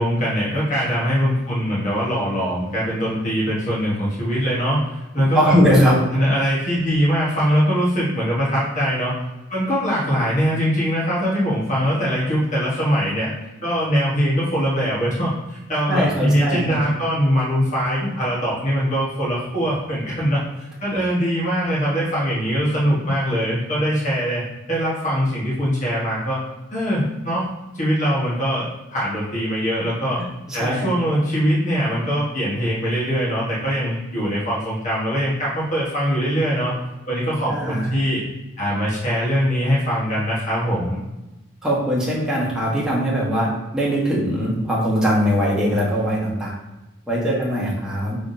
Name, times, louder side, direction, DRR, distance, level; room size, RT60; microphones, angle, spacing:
voice 1, 0.0-9.1 9.5-13.3 13.6-26.4 26.7-27.5 27.7-30.2 30.5-36.7 37.1-38.2 38.6-41.0, equal, 40° left, -7 dB, 1.2 m, -22 dB
voice 2, 5.3-6.0 15.9-16.8 30.5-30.9 37.5-38.0 41.6-46.5 47.1-48.2, equal, 5° right, -6 dB, 1.2 m, -21 dB
5.6 x 3.5 x 2.7 m, 1.0 s
head